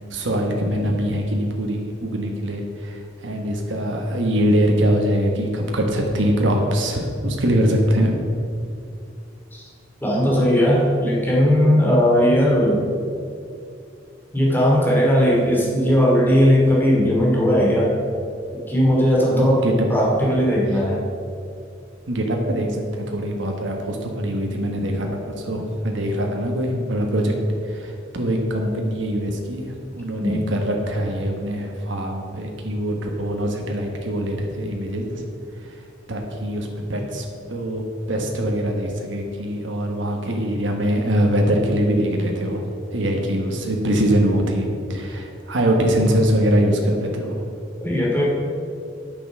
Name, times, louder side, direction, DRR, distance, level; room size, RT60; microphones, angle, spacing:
voice 1, 0.1-8.2 19.3-19.9 22.1-27.3 27.6-35.2 35.6-35.8 36.1-37.8 38.1-42.6 42.9-47.4, equal, 75° right, 1 dB, 1.3 m, -23 dB
voice 2, 10.0-12.8 14.3-17.9 18.7-19.6 19.9-21.0 30.2-30.4 47.8-48.2, equal, 10° left, -4 dB, 2.4 m, -17 dB
8.9 x 7.0 x 6.3 m, 2.4 s
head